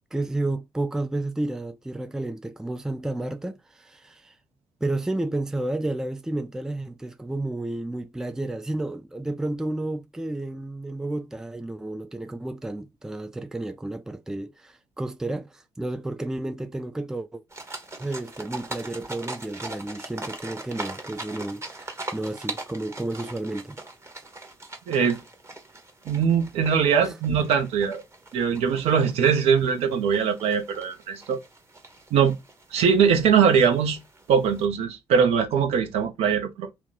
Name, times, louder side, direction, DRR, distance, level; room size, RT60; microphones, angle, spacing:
voice 1, 0.1-4.3 4.8-17.4 18.0-23.8 27.0-27.1, right 2 dB, 5° right, 0.4 m, -31 dB
sound 1, 17.5-34.7, right 2 dB, 25° right, 1.0 m, -41 dB
voice 2, 24.9-25.2 26.1-28.0 28.3-31.4 32.1-32.4 32.7-34.0 34.3-36.7, right 7 dB, 65° right, 0.8 m, -21 dB
2.9 x 2.1 x 3.9 m
hypercardioid pair, 45°, 12 cm